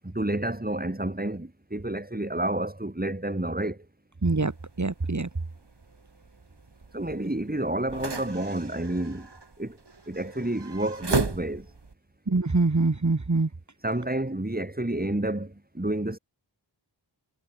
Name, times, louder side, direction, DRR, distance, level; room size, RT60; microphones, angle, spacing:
voice 1, 0.0-3.9 6.9-9.3 9.6-9.8 10.1-11.7 13.8-16.2, right 1 dB, 20° right, 4.1 m, -30 dB
voice 2, 4.2-4.5 4.8-5.3 12.3-13.5, right 3 dB, 40° right, 2.0 m, -24 dB
sound 1, 4.2-11.9, right 3 dB, 60° right, 3.4 m, -36 dB
wide cardioid pair, 60°, 45 cm